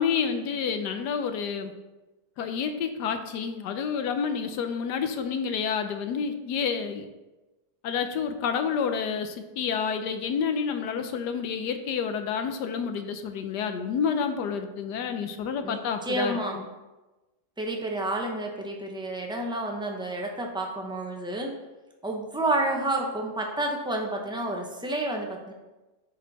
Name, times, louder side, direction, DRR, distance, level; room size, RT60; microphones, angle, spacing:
voice 1, 0.0-1.7 2.4-7.1 7.8-16.7, left 6 dB, 75° left, 8 dB, 1.3 m, -29 dB
voice 2, 16.0-16.6 17.6-21.5 22.0-25.5, right 1 dB, 5° right, 1 dB, 0.4 m, -30 dB
10.5 x 4.4 x 4.1 m, 1.1 s
omnidirectional pair, 1.8 m